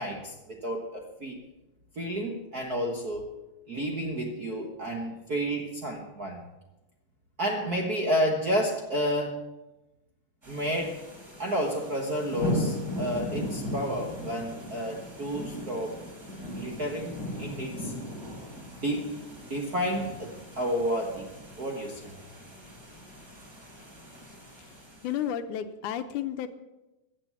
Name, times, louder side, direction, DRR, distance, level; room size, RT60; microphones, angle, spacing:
voice 1, 0.0-1.4 1.9-3.3 3.7-6.4 7.4-9.4 10.5-11.0 11.4-16.0 16.5-17.9 18.6-19.1 19.4-21.3 21.6-22.1, equal, 45° right, 1 dB, 1.2 m, -31 dB
sound 1, 10.4-25.2, left 1 dB, 20° right, 6.7 m, -38 dB
voice 2, 25.0-26.5, left 10 dB, 75° left, 10 dB, 2.2 m, -32 dB
15.0 x 8.3 x 8.2 m, 1.0 s
omnidirectional pair, 3.6 m